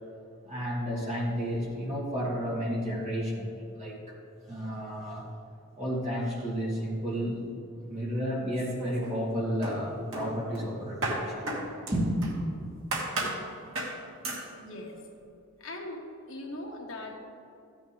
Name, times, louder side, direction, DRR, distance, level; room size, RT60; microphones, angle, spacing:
voice 1, 0.4-4.2 4.5-5.3 5.8-7.4 7.9-11.5 11.9-12.2, equal, 30° right, -6 dB, 2.8 m, -32 dB
sound 1, 8.5-9.3 9.6-12.4 12.9-13.4 13.8-14.0 14.2-14.5, right 2 dB, 65° right, 2.3 m, -34 dB
voice 2, 14.5-15.0 15.6-16.0 16.3-17.2, left 1 dB, 60° left, 0 dB, 1.6 m, -40 dB
15.0 x 10.0 x 3.6 m, 2.7 s
head